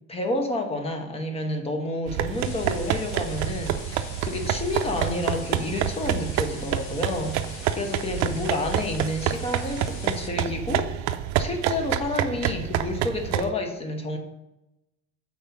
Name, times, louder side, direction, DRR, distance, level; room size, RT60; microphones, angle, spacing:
voice 1, 0.1-10.9 11.4-14.2, left 2 dB, 20° left, 4 dB, 1.1 m, -30 dB
sound 1, 2.1-13.5, right 11 dB, 60° right, 0.5 m, -28 dB
sound 2, 2.2-10.3, left 4 dB, 80° left, 1.3 m, -43 dB
5.6 x 4.5 x 5.7 m, 0.94 s
cardioid pair, 135°, 31 cm